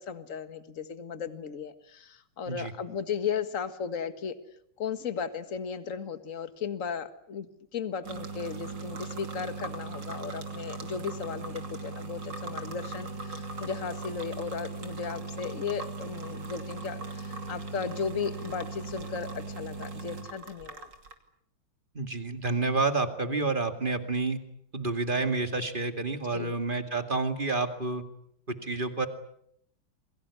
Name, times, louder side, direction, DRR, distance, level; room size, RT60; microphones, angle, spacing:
voice 1, 0.0-4.3 4.8-20.9 26.3-26.5, left 6 dB, 45° left, 10 dB, 2.0 m, -36 dB
sound 1, 8.0-21.1, right 3 dB, 75° right, 3.4 m, -39 dB
voice 2, 21.9-24.4 24.7-28.0 28.6-29.1, right 3 dB, 25° right, 7 dB, 2.3 m, -29 dB
28.5 x 23.0 x 8.4 m, 0.72 s
omnidirectional pair, 2.0 m